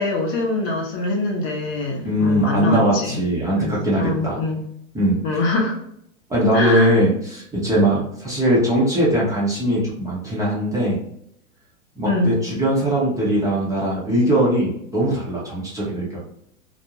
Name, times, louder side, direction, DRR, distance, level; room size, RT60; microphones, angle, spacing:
voice 1, 0.0-3.2 3.6-4.6 5.2-5.8 6.5-7.0 12.1-12.4, left 2 dB, 35° left, 0 dB, 0.7 m, -24 dB
voice 2, 2.0-4.4 4.9-5.2 6.3-11.0 12.0-16.2, right 1 dB, 10° right, -6 dB, 0.7 m, -20 dB
2.5 x 2.1 x 2.9 m, 0.72 s
hypercardioid pair, 120°, 40 cm